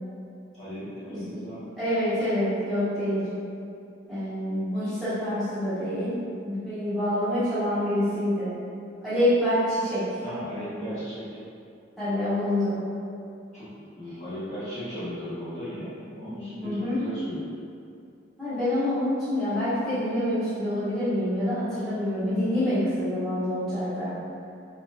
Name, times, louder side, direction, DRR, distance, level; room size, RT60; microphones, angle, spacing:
voice 1, 0.6-1.6 10.2-11.4 13.5-17.4, equal, 40° left, -14 dB, 1.4 m, -36 dB
voice 2, 1.8-3.3 4.1-6.2 6.4-8.5 9.0-10.1 12.0-12.9 16.6-17.0 18.4-24.2, left 1 dB, ahead, -17 dB, 1.5 m, -26 dB
3.0 x 3.0 x 2.3 m, 2.5 s
head